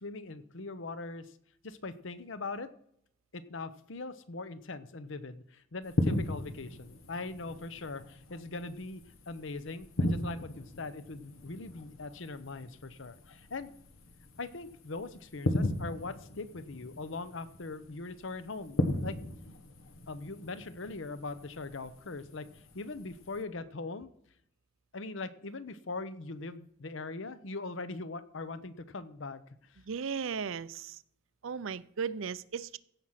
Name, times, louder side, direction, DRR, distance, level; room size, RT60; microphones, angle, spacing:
voice 1, 0.0-1.4 1.6-2.7 3.3-13.7 14.4-19.2 20.1-24.1 24.9-29.8, left 3 dB, 65° left, 14 dB, 0.8 m, -41 dB
sound 1, 5.9-23.4, left 1 dB, 85° left, 1.4 m, -37 dB
voice 2, 29.9-31.0 31.4-32.8, right 6 dB, 70° right, 18 dB, 0.5 m, -36 dB
16.0 x 6.1 x 5.8 m, 0.71 s
head